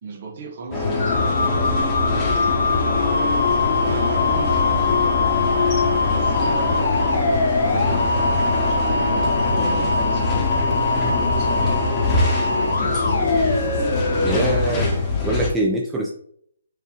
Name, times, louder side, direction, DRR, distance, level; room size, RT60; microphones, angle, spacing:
voice 1, 0.0-1.7 2.1-3.4 3.8-5.8 6.1-6.9 7.7-12.0 12.5-13.7, right 4 dB, 45° right, 4 dB, 0.8 m, -36 dB
sound 1, 0.7-15.5, left 3 dB, 15° left, 1.0 m, -23 dB
sound 2, 1.0-14.8, left 3 dB, 85° left, 0.7 m, -23 dB
sound 3, 1.5-11.6, equal, 45° left, 1.0 m, -33 dB
voice 2, 14.2-14.9 15.2-16.1, right 1 dB, 10° right, -2 dB, 0.5 m, -23 dB
5.0 x 2.7 x 2.8 m, 0.65 s
hypercardioid pair, 155°, 0 cm